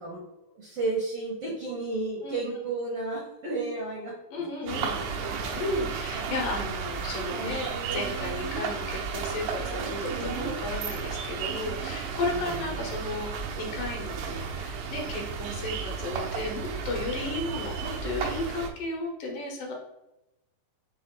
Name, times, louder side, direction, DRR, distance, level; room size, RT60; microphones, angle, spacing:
voice 1, 0.0-4.1 4.6-5.7 12.3-12.5, right 2 dB, 70° right, -4 dB, 1.3 m, -33 dB
voice 2, 4.3-4.9 5.5-19.7, left 2 dB, 75° left, -1 dB, 2.6 m, -34 dB
sound 1, 4.7-18.7, right 6 dB, 90° right, 2.4 m, -33 dB
6.0 x 2.0 x 3.7 m, 0.92 s
omnidirectional pair, 4.0 m